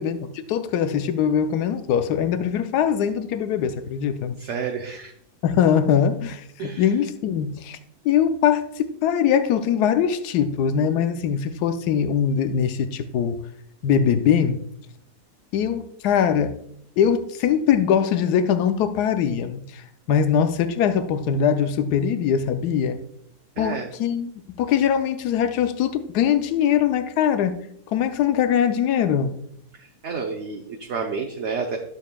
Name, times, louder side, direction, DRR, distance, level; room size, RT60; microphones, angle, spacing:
voice 1, 0.0-4.4 5.4-7.8 8.0-13.4 13.8-14.6 15.5-16.5 17.0-19.8 20.1-23.0 23.6-24.3 24.6-27.6 27.9-29.3, left 8 dB, 85° left, 10 dB, 1.2 m, -22 dB
voice 2, 4.4-5.1 6.6-6.9 23.6-23.9 29.8-31.8, right 5 dB, 55° right, 3 dB, 0.9 m, -30 dB
11.5 x 7.1 x 2.2 m, 0.69 s
omnidirectional pair, 1.7 m